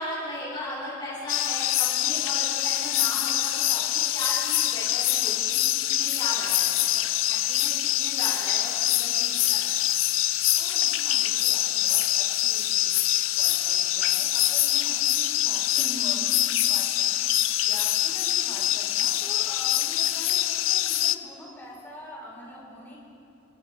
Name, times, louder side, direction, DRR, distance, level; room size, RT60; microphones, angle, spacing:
voice 1, 0.0-7.7 8.0-9.8 15.8-16.4, left 1 dB, 25° left, -9 dB, 3.2 m, -37 dB
sound 1, 1.3-21.2, left 14 dB, 85° left, 0.5 m, -24 dB
voice 2, 10.5-12.9 13.4-23.0, equal, 10° left, -6 dB, 4.0 m, -45 dB
28.5 x 12.0 x 4.1 m, 2.6 s
head